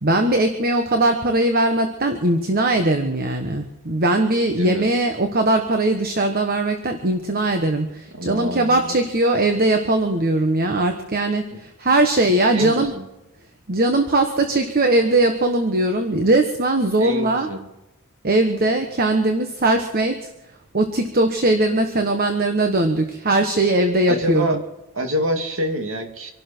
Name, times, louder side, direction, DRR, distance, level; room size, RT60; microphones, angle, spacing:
voice 1, 0.0-12.9 13.7-17.5 18.2-20.3 20.7-24.4, right 2 dB, 45° right, 6 dB, 1.3 m, -20 dB
voice 2, 4.6-4.9 8.1-9.0 11.5-11.6 12.5-13.1 17.0-17.7 24.1-24.6 24.9-26.3, equal, 65° right, 4 dB, 2.6 m, -26 dB
25.5 x 12.0 x 4.5 m, 0.91 s
head